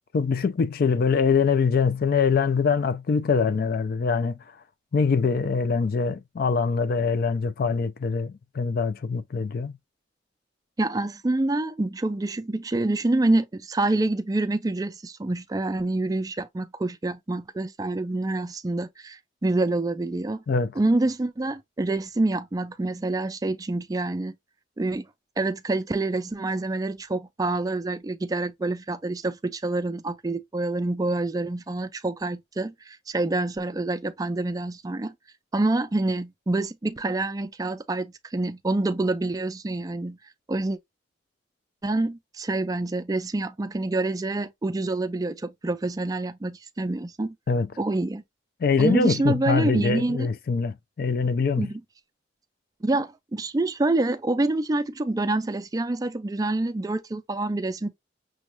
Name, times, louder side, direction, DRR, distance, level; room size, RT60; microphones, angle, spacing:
voice 1, 0.1-4.4 4.9-9.7 20.5-20.7 47.5-47.7 48.6-51.7, left 5 dB, 50° left, 0.4 m, -23 dB
voice 2, 10.8-20.4 20.8-24.3 24.8-25.1 25.4-35.1 35.5-40.2 40.5-40.8 41.8-47.3 47.8-48.2 48.8-50.3 51.6-51.8 52.8-57.9, right 2 dB, 20° right, 0.4 m, -27 dB
6.1 x 2.3 x 3.0 m
head